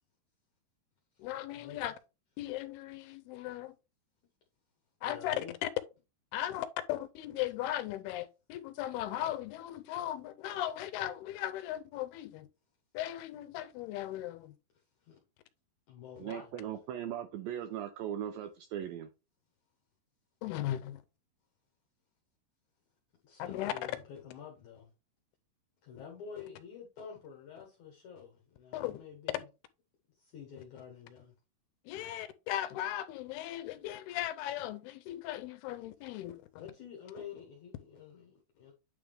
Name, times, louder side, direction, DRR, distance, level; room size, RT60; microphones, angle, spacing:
voice 1, 1.2-1.9 2.4-3.7 5.0-5.4 5.6-5.7 6.3-12.5 12.9-14.6 20.4-21.0 23.4-23.7 28.7-29.0 31.9-36.4, left 13 dB, 85° left, 2.4 m, -37 dB
voice 2, 5.0-5.6 15.0-15.2 15.9-16.8 23.2-24.9 25.8-29.5 30.2-31.3 36.6-38.7, left 7 dB, 65° left, 2.0 m, -49 dB
voice 3, 16.2-19.1, right 10 dB, 80° right, 2.1 m, -39 dB
9.0 x 3.5 x 3.4 m
omnidirectional pair, 4.7 m